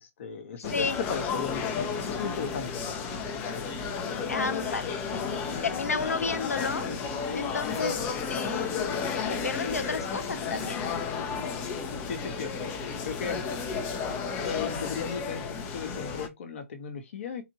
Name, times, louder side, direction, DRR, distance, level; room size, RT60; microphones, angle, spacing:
voice 1, 0.0-3.7 12.0-13.4 14.4-17.4, left 6 dB, 55° left, 1.2 m, -37 dB
sound 1, 0.6-16.3, left 5 dB, 25° left, 0.8 m, -32 dB
voice 2, 4.3-6.9 7.3-8.0 8.3-8.9 9.1-10.8, left 4 dB, 85° left, 0.5 m, -32 dB
3.9 x 2.6 x 3.0 m
figure-of-eight pair, 130°, 8 cm